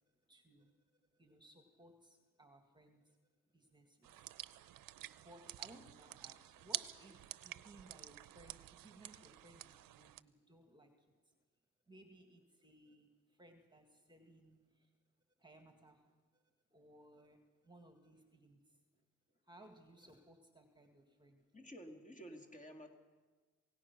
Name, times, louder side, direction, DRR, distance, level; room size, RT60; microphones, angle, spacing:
voice 1, 0.3-0.7 1.1-3.2 3.5-4.3 4.9-10.9 11.3-11.4 11.9-14.9 15.4-16.0 16.3-16.4 16.7-18.8 19.5-21.4, right 1 dB, 15° right, 4 dB, 1.9 m, -62 dB
sound 1, 4.0-10.2, right 13 dB, 75° right, 0.6 m, -49 dB
voice 2, 21.5-22.9, equal, 20° left, 4 dB, 2.3 m, -52 dB
27.0 x 17.5 x 6.0 m, 1.3 s
cardioid pair, 140°, 34 cm